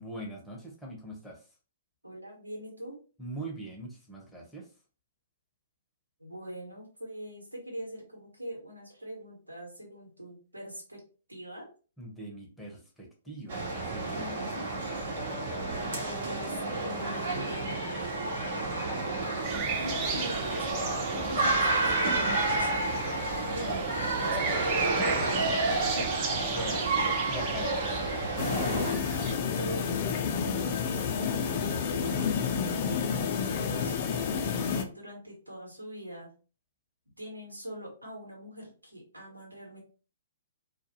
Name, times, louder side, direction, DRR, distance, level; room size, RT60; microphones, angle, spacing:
voice 1, 0.0-1.4 3.2-4.7 12.0-14.3 26.5-26.8 27.3-28.8, right 1 dB, 5° left, -1 dB, 0.8 m, -42 dB
voice 2, 2.0-3.0 6.2-11.0 11.3-11.7 14.1-14.7 15.6-17.8 19.8-20.8 21.1-23.0 23.4-23.9 24.2-24.7 25.6-27.2 29.5-30.0 30.5-31.5 31.8-36.3 37.2-39.8, equal, 90° right, 0 dB, 1.3 m, -43 dB
sound 1, 13.5-28.9, right 2 dB, 60° right, 1.0 m, -30 dB
sound 2, 19.4-29.3, right 5 dB, 35° right, 0.5 m, -36 dB
sound 3, 28.4-34.8, left 6 dB, 40° left, 0.4 m, -30 dB
2.4 x 2.2 x 2.8 m, 0.35 s
figure-of-eight pair, 120°, 0 cm